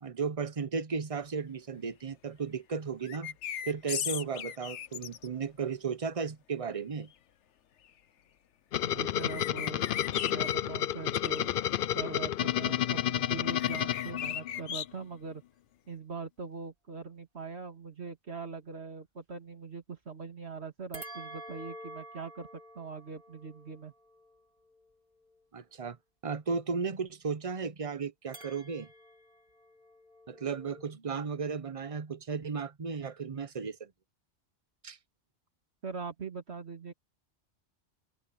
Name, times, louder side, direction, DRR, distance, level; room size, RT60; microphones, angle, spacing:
voice 1, 0.0-3.3 3.7-7.1 25.5-26.0 26.2-28.9 30.3-33.9 34.8-35.0, right 5 dB, 35° right, 0.8 m, -35 dB
sound 1, 3.0-5.3 9.2-10.6 11.1-11.4 13.4-14.8, left 9 dB, 85° left, 1.1 m, -37 dB
sound 2, 8.7-14.7, left 11 dB, 60° left, 0.6 m, -31 dB
voice 2, 8.8-10.0 10.3-11.6 11.9-15.4 15.9-22.5 22.7-23.9 35.8-36.9, right 4 dB, 65° right, 2.5 m, -42 dB
sound 3, 20.9-25.4 28.3-30.9, right 1 dB, 50° right, 2.0 m, -49 dB
omnidirectional pair, 1.2 m